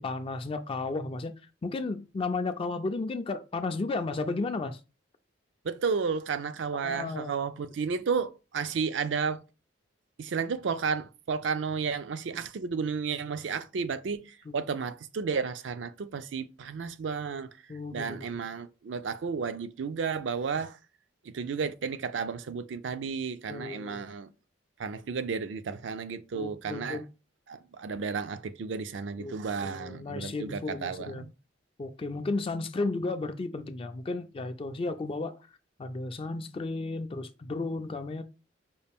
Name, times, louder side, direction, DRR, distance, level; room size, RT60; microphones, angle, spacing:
voice 1, 0.0-1.3 1.6-4.8 6.8-7.4 14.5-14.6 17.7-18.3 23.5-24.1 26.3-27.1 29.2-29.4 29.6-31.3 31.8-35.4 35.8-38.2, left 3 dB, 30° left, 0.3 m, -33 dB
voice 2, 5.6-9.4 10.2-17.5 17.9-20.8 21.2-24.3 24.8-27.0 27.5-31.3, right 5 dB, 75° right, 0.4 m, -32 dB
5.3 x 2.4 x 3.4 m
head